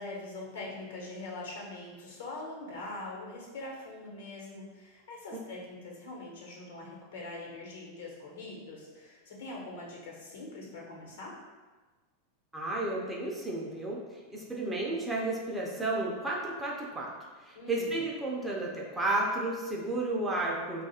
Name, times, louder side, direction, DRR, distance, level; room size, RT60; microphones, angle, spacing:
voice 1, 0.0-11.3 17.5-18.0, left 2 dB, 75° left, -2 dB, 1.1 m, -43 dB
voice 2, 12.5-17.1 17.4-20.9, right 2 dB, 10° right, -3 dB, 0.5 m, -32 dB
3.0 x 2.4 x 4.2 m, 1.3 s
supercardioid pair, 155°, 0 cm